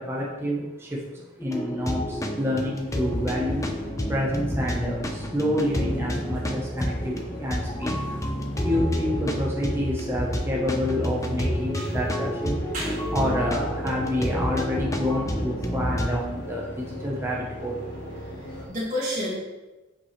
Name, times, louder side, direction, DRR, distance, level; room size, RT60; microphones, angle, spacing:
voice 1, 0.0-3.7 4.1-8.2 8.6-12.6 13.1-17.8, left 1 dB, 15° right, -3 dB, 1.0 m, -28 dB
sound 1, 1.4-16.2, equal, 15° left, 0.7 m, -29 dB
sound 2, 2.7-18.7, equal, 60° left, 1.9 m, -37 dB
voice 2, 12.7-13.1 18.6-19.4, equal, 40° right, -8 dB, 1.9 m, -30 dB
9.0 x 5.2 x 3.3 m, 1.1 s
head